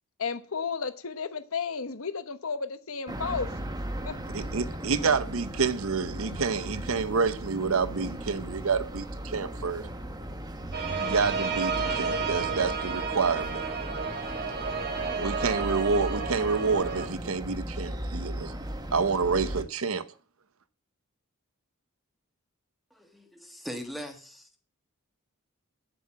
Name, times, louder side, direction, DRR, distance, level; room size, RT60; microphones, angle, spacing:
voice 1, 0.2-3.7 4.0-4.2, left 5 dB, 70° left, 1.0 m, -33 dB
sound 1, 3.1-19.6, right 1 dB, 20° right, 1.2 m, -37 dB
voice 2, 4.3-9.8 10.9-13.6 15.1-18.5 18.9-20.0, right 5 dB, 70° right, 0.9 m, -28 dB
sound 2, 10.7-17.1, right 4 dB, 45° right, 2.0 m, -31 dB
voice 3, 22.9-24.5, equal, ahead, 1.5 m, -40 dB
9.3 x 7.8 x 7.5 m
head